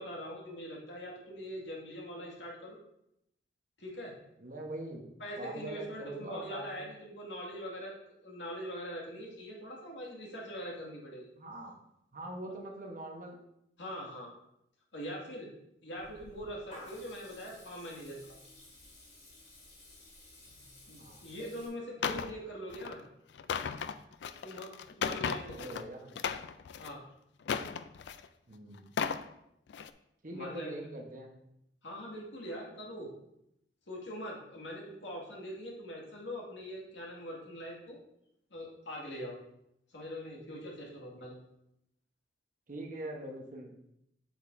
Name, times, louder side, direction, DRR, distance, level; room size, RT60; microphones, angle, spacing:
voice 1, 0.0-2.8 3.8-4.1 5.2-8.0 8.2-11.3 13.8-14.3 14.9-15.5 15.8-18.2 20.9-23.0 24.4-25.8 26.8-27.0 30.3-30.7 31.8-33.1 33.9-38.0 38.5-39.3 39.9-41.4, equal, 90° left, -2 dB, 2.1 m, -42 dB
voice 2, 4.4-5.0 5.4-7.0 11.3-11.7 12.1-13.4 21.0-21.3 25.6-26.2 28.5-29.0 30.2-31.5 42.7-43.9, right 1 dB, 50° right, 1 dB, 1.1 m, -43 dB
Water tap faucet / Liquid, 16.0-21.7, left 1 dB, 40° left, 2.4 m, -54 dB
sound 1, 22.0-22.3 22.7-22.9 23.3-25.8 26.1-26.9 27.4-28.3 28.8-29.2 29.7-29.9, left 6 dB, 70° left, 0.4 m, -35 dB
7.8 x 6.9 x 2.7 m, 0.80 s
head